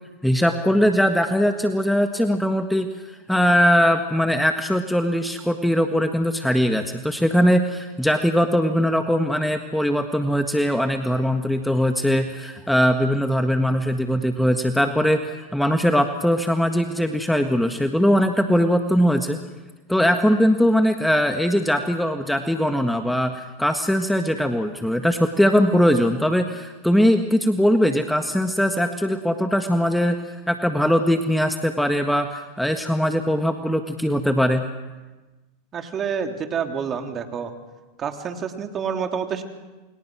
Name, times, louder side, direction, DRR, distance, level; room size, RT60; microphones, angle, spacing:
voice 1, 0.2-2.9 3.3-19.4 19.9-30.1 30.5-34.7, equal, ahead, 6 dB, 1.6 m, -21 dB
voice 2, 35.7-37.5 38.0-39.4, right 7 dB, 30° right, 4 dB, 3.2 m, -28 dB
29.0 x 24.0 x 6.2 m, 1.2 s
hypercardioid pair, 95°, 0 cm